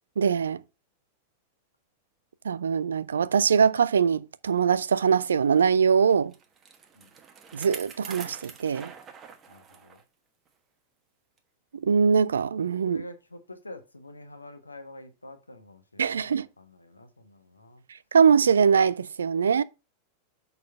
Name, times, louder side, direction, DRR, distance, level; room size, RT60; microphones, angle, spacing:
voice 1, 0.2-0.6 2.4-6.3 7.5-8.9 11.7-13.0 16.0-16.5 18.1-19.6, right 6 dB, 70° right, 0.4 m, -22 dB
Bicycle, 6.1-10.0 10.5-10.6 11.4-11.5, right 6 dB, 25° right, 1.2 m, -45 dB
voice 2, 9.5-10.0 12.8-17.8, left 1 dB, 80° left, 1.1 m, -47 dB
6.4 x 4.2 x 5.6 m
figure-of-eight pair, 90°, 0 cm